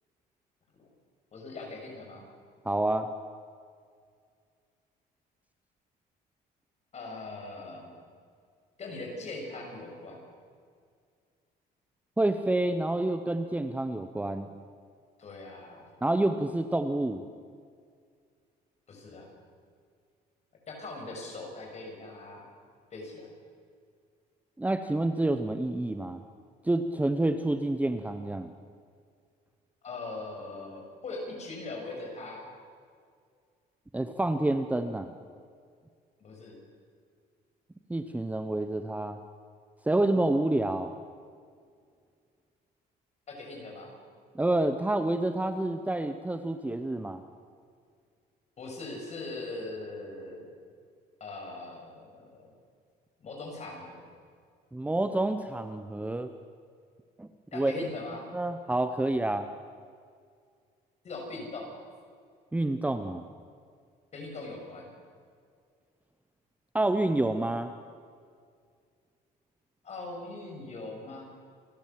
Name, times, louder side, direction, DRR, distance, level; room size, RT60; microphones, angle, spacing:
voice 1, 1.3-2.2 6.9-7.9 8.8-10.2 15.2-15.8 18.9-19.3 20.7-22.4 22.9-23.3 29.8-32.5 36.2-36.6 43.3-44.0 48.6-50.5 51.2-52.5 53.2-54.1 57.5-58.3 61.0-61.7 64.1-64.9 69.8-71.2, left 2 dB, 40° left, 1 dB, 6.7 m, -41 dB
voice 2, 2.6-3.1 12.2-14.5 16.0-17.3 24.6-26.2 26.6-28.5 33.9-35.1 37.9-39.2 39.8-40.9 44.3-47.2 54.7-56.3 57.2-57.7 58.3-59.5 62.5-63.3 66.7-67.7, right 2 dB, 10° right, 9 dB, 0.9 m, -28 dB
28.0 x 12.0 x 7.7 m, 2.2 s
cardioid pair, 110°, 17 cm